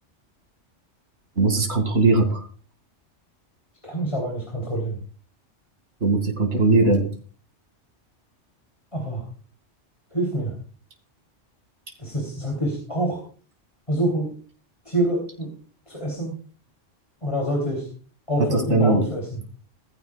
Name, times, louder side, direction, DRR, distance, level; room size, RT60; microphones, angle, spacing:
voice 1, 1.4-2.4 6.0-7.0 18.4-19.1, right 3 dB, 65° right, 3 dB, 2.7 m, -19 dB
voice 2, 3.8-5.0 8.9-9.2 10.1-10.5 12.0-13.2 13.9-14.3 14.8-15.5 15.9-16.4 17.2-17.9 18.3-19.4, right 1 dB, 25° left, -1 dB, 3.3 m, -26 dB
17.0 x 14.5 x 2.4 m, 0.41 s
omnidirectional pair, 1.2 m